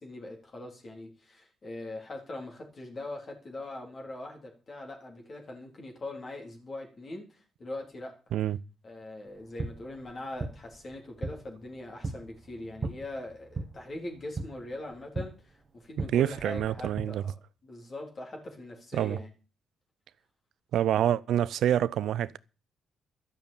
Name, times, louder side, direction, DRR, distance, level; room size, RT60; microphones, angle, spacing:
voice 1, 0.0-8.2 8.8-17.3 17.6-19.3, left 2 dB, 40° left, 3.8 m, -41 dB
sound 1, 9.3-17.0, right 3 dB, 30° right, 1.6 m, -39 dB
voice 2, 16.1-17.2 18.9-19.2 20.7-22.4, right 11 dB, 75° right, 0.5 m, -27 dB
12.0 x 6.9 x 8.8 m
cardioid pair, 90°, 0 cm